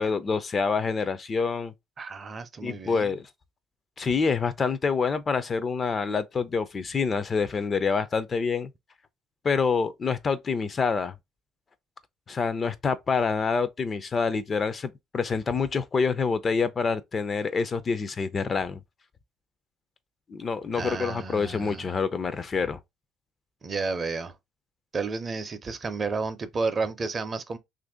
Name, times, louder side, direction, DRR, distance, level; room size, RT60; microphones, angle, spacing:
voice 1, 0.0-1.7 2.6-3.3 4.0-8.7 9.4-11.1 12.3-18.8 20.3-22.8, left 5 dB, 30° left, 0.4 m, -27 dB
voice 2, 2.0-3.1 20.7-21.9 23.6-24.3 24.9-27.6, right 4 dB, 30° right, 0.5 m, -31 dB
2.9 x 2.5 x 3.6 m
cardioid pair, 110°, 0 cm